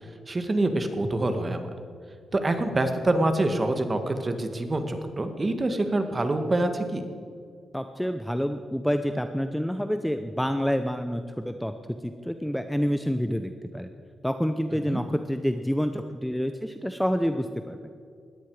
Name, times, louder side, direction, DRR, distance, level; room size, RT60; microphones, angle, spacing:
voice 1, 0.3-1.7 2.3-7.0 14.9-15.0, right 2 dB, 30° right, 7 dB, 1.9 m, -26 dB
voice 2, 7.7-11.7 12.0-13.9 14.2-17.8, equal, 5° left, 8 dB, 0.8 m, -28 dB
19.5 x 14.0 x 4.9 m, 2.3 s
cardioid pair, 90°, 0 cm